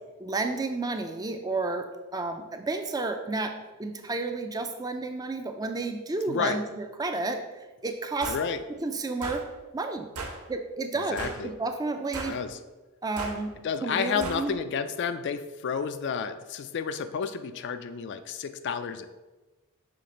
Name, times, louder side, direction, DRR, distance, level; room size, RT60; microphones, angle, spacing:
voice 1, 0.2-8.3 8.8-9.5 9.7-10.1 10.5-12.4 13.0-13.5 13.8-14.6, right 3 dB, 15° right, 6 dB, 0.4 m, -31 dB
voice 2, 6.3-6.6 8.3-8.6 11.1-11.5 12.3-12.6 13.6-19.1, left 6 dB, 50° left, 10 dB, 0.3 m, -31 dB
sound 1, 8.2-8.4 9.2-9.4 10.2-10.4 11.2-11.5 12.1-12.4 13.2-13.4 14.2-14.4, right 3 dB, 85° right, 0.9 m, -36 dB
5.8 x 3.3 x 5.0 m, 1.2 s
head